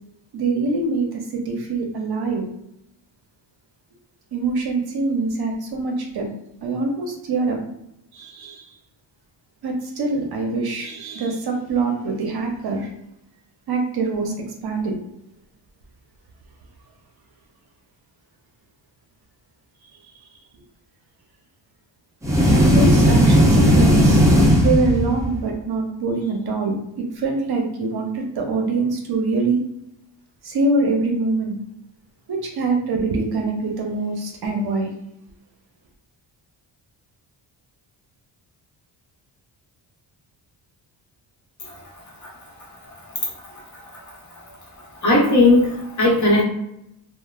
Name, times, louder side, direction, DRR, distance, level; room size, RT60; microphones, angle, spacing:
voice 1, 0.3-2.4 4.3-6.3 6.6-7.6 8.1-8.6 9.6-12.9 13.7-14.3 14.6-14.9 22.5-24.2 24.6-29.6 30.4-31.5 32.3-34.9, right 3 dB, 55° right, 2 dB, 0.6 m, -24 dB
sound 1, 22.2-25.4, equal, 5° right, 0.5 m, -15 dB
voice 2, 45.0-46.4, left 2 dB, 40° left, -3 dB, 1.0 m, -16 dB
3.1 x 2.1 x 2.3 m, 0.82 s
cardioid pair, 120°, 45 cm